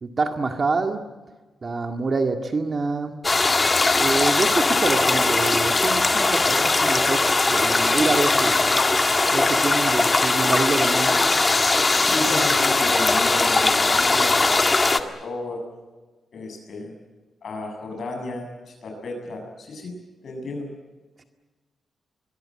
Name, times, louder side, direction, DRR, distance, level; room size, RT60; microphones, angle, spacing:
voice 1, 0.0-1.0 1.6-3.1 4.0-8.7 9.3-11.2, right 3 dB, 40° right, 5 dB, 2.0 m, -26 dB
sound 1, 3.2-15.0, left 3 dB, 25° left, 1.7 m, -20 dB
voice 2, 12.0-15.6 16.3-16.9 17.4-19.9 20.2-20.7, left 2 dB, 60° left, 2 dB, 7.3 m, -33 dB
24.5 x 21.5 x 8.8 m, 1.2 s
cardioid pair, 100°, 0 cm